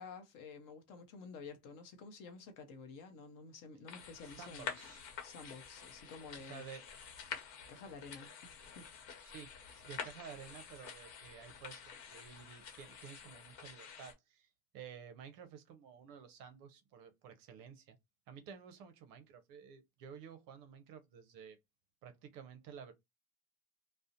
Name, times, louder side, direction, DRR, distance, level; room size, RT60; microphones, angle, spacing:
voice 1, 0.0-4.8 5.2-6.6 7.7-9.2, left 4 dB, 45° left, 0.6 m, -51 dB
sound 1, 3.9-14.1, left 6 dB, 90° left, 0.9 m, -49 dB
voice 2, 4.2-5.1 6.4-6.8 9.2-18.0 18.3-21.6 22.0-22.9, right 7 dB, 45° right, 0.6 m, -52 dB
2.4 x 2.1 x 2.7 m
supercardioid pair, 125°, 47 cm